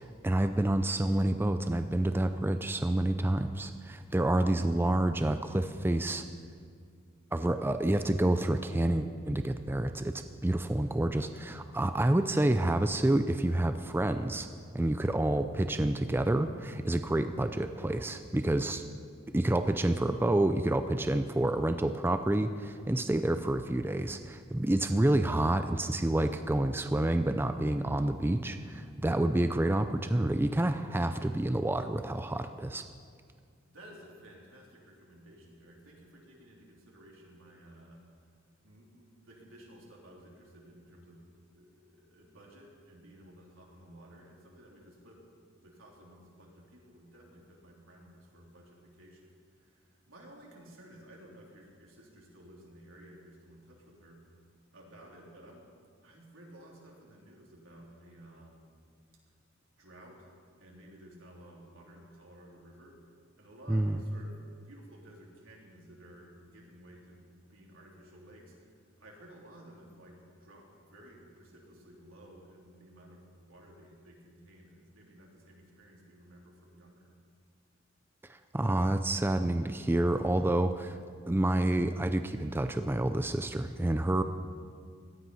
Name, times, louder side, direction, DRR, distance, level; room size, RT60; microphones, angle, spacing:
voice 1, 0.0-6.2 7.3-14.5 14.7-18.8 19.3-32.8 63.7-64.0 78.5-81.0 81.3-84.2, right 1 dB, 10° right, 9 dB, 0.4 m, -28 dB
voice 2, 33.7-38.1 38.6-45.3 45.6-54.2 54.7-55.7 56.0-58.7 59.8-60.3 60.6-63.0 63.4-67.2 67.5-77.2, right 1 dB, 90° right, -2 dB, 3.4 m, -54 dB
17.0 x 12.5 x 5.6 m, 2.1 s
head